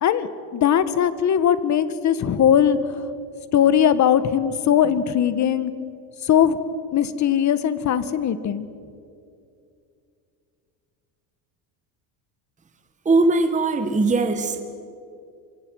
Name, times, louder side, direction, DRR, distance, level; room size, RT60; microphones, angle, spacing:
voice 1, 0.0-3.1 3.5-5.7 6.2-6.6 6.9-8.7, left 9 dB, 35° left, 13 dB, 1.4 m, -20 dB
voice 2, 13.0-14.6, right 3 dB, 15° right, 7 dB, 1.5 m, -20 dB
26.5 x 25.5 x 6.4 m, 2.5 s
cardioid pair, 125°, 48 cm